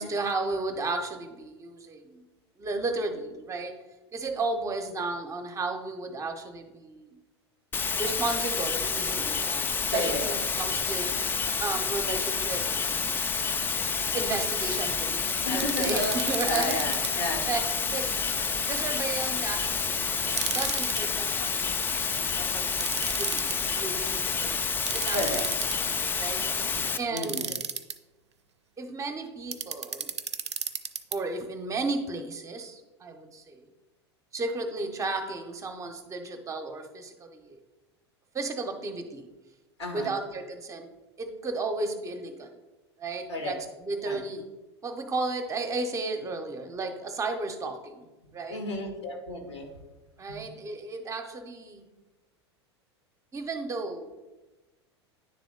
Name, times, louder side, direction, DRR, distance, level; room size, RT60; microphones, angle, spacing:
voice 1, 0.0-2.2 2.6-3.8 4.1-7.2 8.0-11.3 11.6-12.6 14.1-16.9 17.5-17.6 17.9-18.1 18.6-20.1 20.5-22.0 22.4-24.5 24.9-25.4 25.8-26.7 27.0-27.6 28.8-30.1 31.1-33.6 34.3-37.6 38.3-39.3 39.9-40.9 41.2-42.5 43.0-44.5 44.8-48.0 48.3-48.6 50.2-51.8 53.3-54.1, right 3 dB, 20° right, 6 dB, 0.7 m, -34 dB
sound 1, 7.7-27.0, left 5 dB, 15° left, 0.3 m, -29 dB
voice 2, 9.9-10.3 15.4-16.2 16.4-17.5 25.1-25.5 27.1-27.5 39.8-40.1 43.3-43.5 44.0-44.2 48.5-49.7 50.3-50.4, left 2 dB, 80° left, 2 dB, 1.5 m, -32 dB
sound 2, 15.6-17.1 20.3-21.1 22.8-23.6 24.9-26.0 27.2-27.9 29.5-31.2, right 7 dB, 80° right, 0.4 m, -33 dB
9.7 x 3.4 x 3.8 m, 1.1 s
figure-of-eight pair, 85°, 14 cm